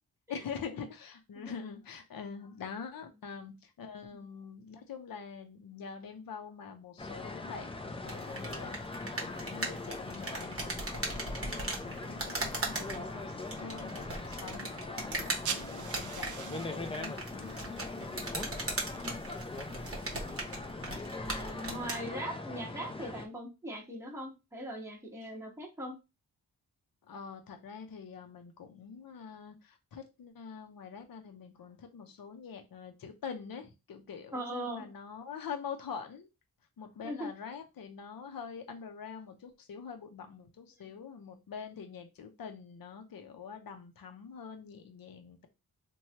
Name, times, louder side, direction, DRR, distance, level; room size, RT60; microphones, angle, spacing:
voice 1, 0.3-17.7 17.9-18.3 27.0-36.3 36.8-45.5, left 6 dB, 60° left, 5 dB, 0.6 m, -45 dB
sound 1, 7.0-23.3, left 2 dB, 15° left, 0.4 m, -41 dB
sound 2, 8.0-22.0, right 2 dB, 35° right, 0.9 m, -39 dB
voice 2, 15.0-15.4 17.6-18.0 18.9-19.2 21.0-26.0 34.3-34.9 37.0-37.3, right 1 dB, 5° right, -2 dB, 1.0 m, -41 dB
sound 3, 15.2-20.4, right 7 dB, 55° right, 0.4 m, -45 dB
3.1 x 2.2 x 2.8 m, 0.26 s
cardioid pair, 70°, 38 cm